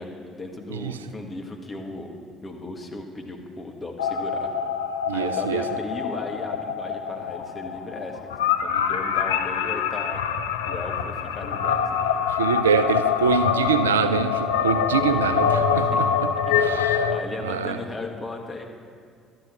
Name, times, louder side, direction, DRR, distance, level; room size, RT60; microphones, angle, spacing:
voice 1, 0.0-4.5 5.1-8.2 8.6-10.2 10.6-11.8 14.9-15.2 15.8-16.0 16.5-18.6, left 2 dB, 30° left, 2 dB, 1.5 m, -36 dB
sound 1, 4.0-17.2, left 7 dB, 75° left, 0.4 m, -25 dB
voice 2, 5.1-5.6 12.4-16.3 16.6-17.1 17.4-17.8, right 7 dB, 80° right, 12 dB, 0.3 m, -24 dB
sound 2, 11.6-16.4, left 5 dB, 60° left, 1.5 m, -31 dB
12.0 x 9.1 x 4.3 m, 2.2 s
figure-of-eight pair, 50°, 0 cm